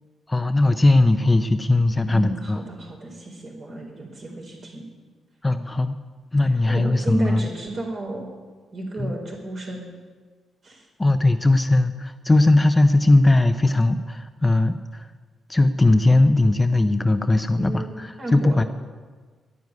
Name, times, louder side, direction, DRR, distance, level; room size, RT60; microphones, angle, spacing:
voice 1, 0.3-2.6 5.4-6.0 6.3-7.4 9.0-9.1 11.0-15.1 15.5-18.6, left 2 dB, 15° left, 9 dB, 0.5 m, -19 dB
voice 2, 2.1-4.8 6.5-8.3 8.7-9.9 10.6-10.9 17.5-18.7, right 1 dB, 50° right, -1 dB, 4.4 m, -32 dB
11.0 x 9.5 x 9.6 m, 1.4 s
cardioid pair, 110°, 0 cm